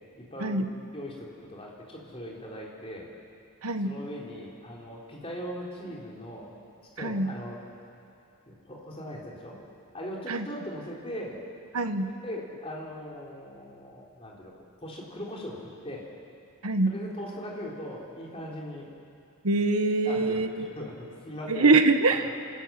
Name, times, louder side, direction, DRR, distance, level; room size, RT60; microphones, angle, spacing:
voice 1, 0.2-0.6 0.9-3.1 3.8-6.5 6.9-7.6 8.5-9.6 9.9-11.4 12.0-16.1 16.9-18.9 20.0-21.7 22.2-22.3, equal, 25° left, -3 dB, 3.9 m, -40 dB
voice 2, 7.0-7.3 10.3-10.5 11.7-12.1 16.6-16.9 19.4-20.7 21.5-22.2, right 3 dB, 80° right, 7 dB, 1.4 m, -23 dB
28.5 x 14.0 x 8.9 m, 2.6 s
head